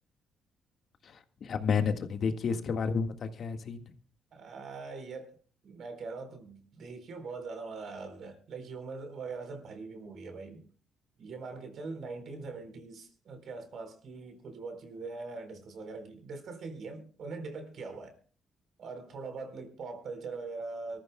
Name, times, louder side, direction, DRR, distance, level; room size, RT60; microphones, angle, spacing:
voice 1, 1.0-3.8, left 5 dB, 60° left, 1.7 m, -31 dB
voice 2, 4.3-5.4 5.6-10.7 11.2-18.2 18.8-21.0, right 4 dB, 65° right, 4.1 m, -42 dB
24.5 x 14.0 x 2.3 m
cardioid pair, 90°, 0 cm